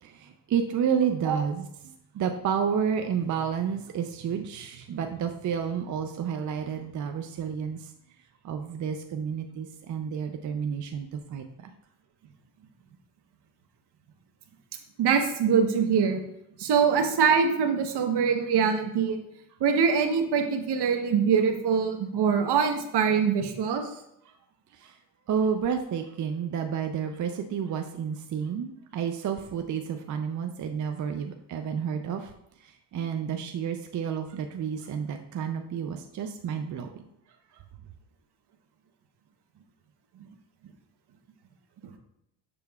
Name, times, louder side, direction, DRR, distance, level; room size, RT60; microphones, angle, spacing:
voice 1, 0.0-7.9 8.4-11.7 24.3-24.4 24.7-25.0 25.3-32.3 32.6-37.0, right 7 dB, 45° right, 5 dB, 0.5 m, -30 dB
voice 2, 15.0-16.2 16.6-19.2 19.6-23.9, right 6 dB, 70° right, 5 dB, 1.0 m, -23 dB
6.8 x 6.5 x 2.3 m, 0.79 s
cardioid pair, 100°, 41 cm